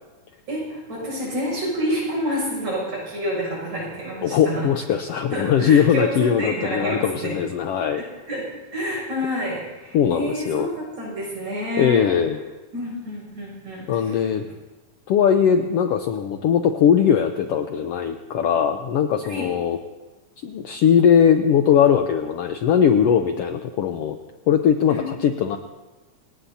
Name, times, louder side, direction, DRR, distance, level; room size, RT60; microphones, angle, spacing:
voice 1, 0.5-4.7 5.3-7.4 8.3-8.5 8.7-12.1 12.7-14.2 19.3-19.5 24.9-25.1, equal, 65° right, -3 dB, 8.1 m, -28 dB
voice 2, 4.2-8.0 9.9-10.7 11.8-12.4 13.9-14.4 15.1-19.8 20.4-24.2 24.5-25.6, left 8 dB, 90° left, 6 dB, 1.3 m, -20 dB
27.5 x 18.5 x 2.8 m, 1.2 s
omnidirectional pair, 3.6 m